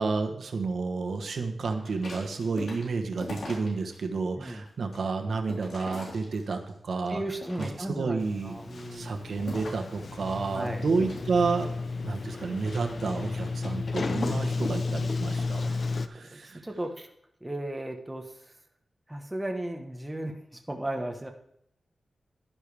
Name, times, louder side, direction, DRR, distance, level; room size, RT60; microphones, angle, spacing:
voice 1, 0.0-7.2 7.6-8.5 8.9-11.7 12.0-15.8 16.1-16.6, right 4 dB, 75° right, 4 dB, 1.1 m, -30 dB
sound 1, 1.8-4.0 4.4-6.8 7.2-8.1 8.6-10.0 10.9-13.6 14.1-14.4, left 2 dB, 75° left, 3.8 m, -43 dB
voice 2, 7.1-9.1 10.5-10.9 15.6-17.1 17.4-18.5 19.1-21.3, right 1 dB, 10° right, 3 dB, 1.2 m, -36 dB
Sliding door, 8.2-16.1, left 3 dB, 55° left, 0.6 m, -32 dB
11.0 x 10.0 x 3.4 m, 0.72 s
wide cardioid pair, 105°, 0 cm